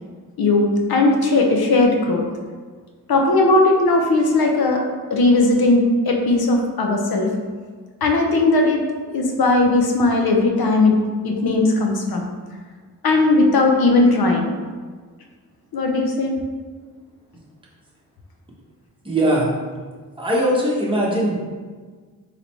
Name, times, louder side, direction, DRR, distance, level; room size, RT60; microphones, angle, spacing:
voice 1, 0.4-2.2 3.1-4.8 5.1-7.3 8.0-8.8 9.1-10.9 11.2-12.3 13.0-14.5 15.7-16.4, left 2 dB, 80° left, 1 dB, 0.8 m, -17 dB
voice 2, 19.0-19.5 20.2-21.3, right 1 dB, 15° right, -5 dB, 1.2 m, -20 dB
4.0 x 3.1 x 4.3 m, 1.5 s
wide cardioid pair, 85°, 36 cm